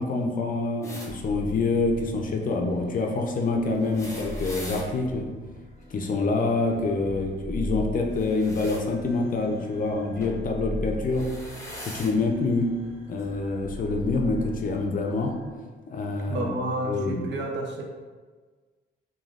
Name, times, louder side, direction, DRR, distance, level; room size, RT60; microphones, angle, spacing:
voice 1, 0.0-5.3 5.9-11.3 11.8-12.7 13.1-15.3 15.9-16.5 16.8-17.2, left 3 dB, 45° left, 2 dB, 0.4 m, -26 dB
sound 1, 0.8-1.1 3.7-4.9 8.1-8.8 10.2-10.4 11.0-12.1 13.2-13.3 14.5-14.6, left 1 dB, 15° left, 0.7 m, -41 dB
sound 2, 1.1-15.5, left 1 dB, 25° right, 1.2 m, -40 dB
voice 2, 16.2-17.8, right 1 dB, 65° right, 1 dB, 0.6 m, -30 dB
3.2 x 2.3 x 2.4 m, 1.4 s
cardioid pair, 90°, 20 cm